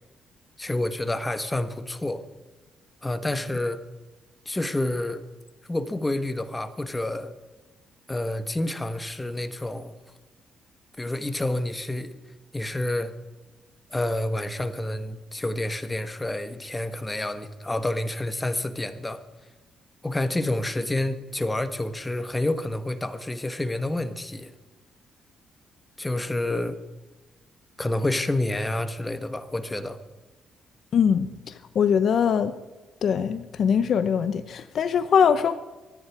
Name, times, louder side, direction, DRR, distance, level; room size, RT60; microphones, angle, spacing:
voice 1, 0.6-2.2 3.0-3.8 4.4-5.2 5.7-7.3 8.1-9.9 11.0-12.1 12.5-13.1 13.9-19.2 20.0-24.5 26.0-26.8 27.8-30.0, left 1 dB, 15° left, 10 dB, 1.3 m, -28 dB
voice 2, 30.9-31.3 31.7-32.5 33.0-35.6, left 7 dB, 60° left, 13 dB, 0.7 m, -22 dB
24.0 x 9.9 x 4.8 m, 1.2 s
cardioid pair, 90°, 0 cm